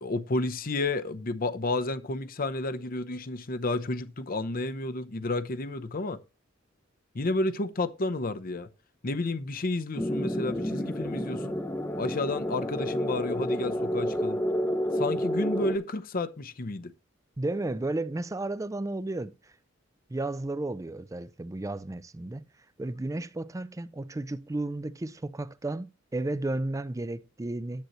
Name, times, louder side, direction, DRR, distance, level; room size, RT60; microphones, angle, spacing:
voice 1, 0.0-6.2 7.1-8.7 9.0-11.6 12.0-14.4 15.0-16.9, left 2 dB, 45° left, 0.7 m, -31 dB
sound 1, 10.0-15.8, equal, 10° left, 0.8 m, -30 dB
voice 2, 17.4-19.3 20.1-22.4 22.8-27.8, right 2 dB, 15° right, 0.4 m, -33 dB
10.5 x 7.9 x 3.1 m
head